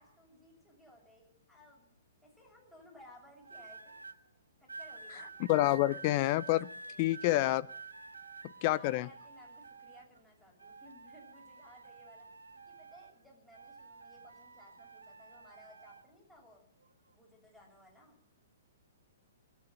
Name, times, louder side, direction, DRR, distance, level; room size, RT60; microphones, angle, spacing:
voice 1, 0.0-1.9 2.2-4.0 4.6-5.3 6.9-7.4 8.6-12.3 12.5-16.6 17.1-18.2, left 1 dB, 5° left, -2 dB, 7.3 m, -59 dB
sound 1, 3.4-4.2 4.7-10.2 10.6-13.2 13.5-16.0 16.8-17.1, right 4 dB, 85° right, 1.3 m, -50 dB
voice 2, 5.5-6.7 7.0-7.7 8.6-9.1, left 16 dB, 40° left, 19 dB, 0.5 m, -28 dB
21.0 x 9.1 x 7.6 m, 0.76 s
figure-of-eight pair, 115°, 0 cm